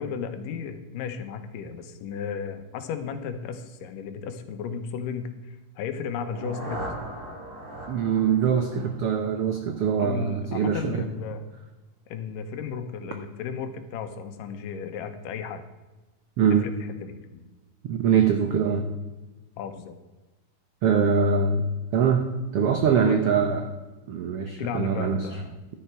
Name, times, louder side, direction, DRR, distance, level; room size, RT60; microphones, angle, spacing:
voice 1, 0.0-6.8 10.0-11.4 12.1-15.6 16.5-17.3 19.6-19.9 23.0-23.3 24.6-25.6, left 6 dB, 85° left, 8 dB, 2.7 m, -34 dB
sound 1, 6.0-10.0, right 1 dB, 30° right, 4.0 m, -39 dB
voice 2, 7.9-11.0 16.4-16.6 17.8-18.9 20.8-21.7 21.9-23.6 24.1-25.3, right 6 dB, 75° right, 6 dB, 1.3 m, -23 dB
12.0 x 10.0 x 4.5 m, 1.2 s
omnidirectional pair, 3.8 m